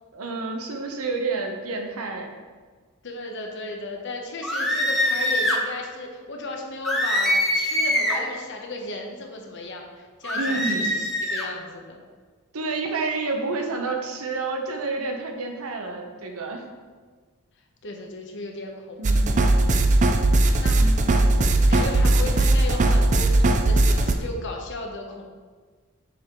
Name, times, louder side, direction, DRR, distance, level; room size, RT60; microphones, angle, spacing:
voice 1, 0.1-2.3 10.3-10.9 12.5-16.7 19.0-19.4 20.7-21.1 22.2-22.3, right 3 dB, 75° right, 2 dB, 1.0 m, -29 dB
voice 2, 3.0-12.0 17.8-19.0 19.5-19.8 20.5-25.2, left 2 dB, 55° left, 1 dB, 0.9 m, -35 dB
sound 1, 4.4-5.6 6.8-8.3 10.2-11.5, left 1 dB, ahead, 0.9 m, -23 dB
sound 2, 19.0-24.1, right 2 dB, 35° right, 0.4 m, -19 dB
7.0 x 4.7 x 3.8 m, 1.5 s
head